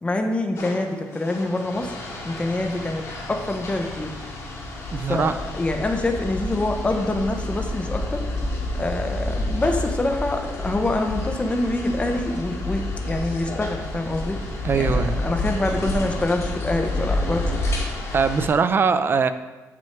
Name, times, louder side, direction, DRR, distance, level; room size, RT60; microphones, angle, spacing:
voice 1, 0.0-2.0 2.2-4.1 5.1-8.2 8.8-14.4 14.7-17.4, left 2 dB, 20° left, 4 dB, 0.8 m, -25 dB
sound 1, 0.6-18.5, left 1 dB, 55° left, 2.1 m, -29 dB
voice 2, 4.9-5.4 14.6-15.2 18.1-19.3, right 5 dB, 40° right, 11 dB, 0.5 m, -21 dB
7.2 x 6.1 x 4.5 m, 1.2 s
cardioid pair, 110°, 6 cm